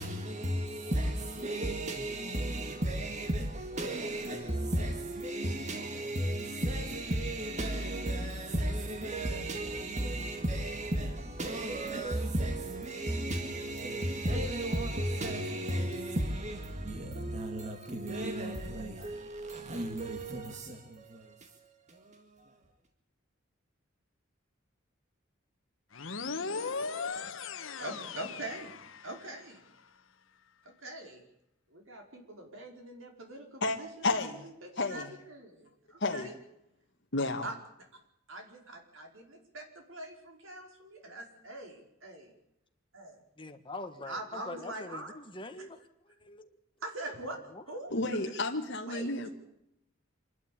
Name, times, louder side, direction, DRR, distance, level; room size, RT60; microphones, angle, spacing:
voice 1, 0.0-22.6, right 1 dB, 35° right, 2.0 m, -34 dB
sound 1, 25.9-29.4, left 4 dB, 75° left, 1.3 m, -38 dB
voice 2, 27.1-27.5 27.8-28.7 29.0-29.6 30.6-31.2 31.7-36.3 37.4-37.6 38.3-42.2 42.9-43.2 44.1-45.2 45.5-45.6 46.8-47.4 47.7-47.9 48.9-49.3, right 1 dB, 80° right, 4.9 m, -43 dB
voice 3, 34.0-34.5 34.8-35.1 36.0-36.3 37.1-37.5 47.9-49.3, left 2 dB, 60° left, 1.7 m, -31 dB
voice 4, 43.4-46.6 47.5-47.8, left 2 dB, 25° left, 1.6 m, -44 dB
26.5 x 12.0 x 8.7 m
head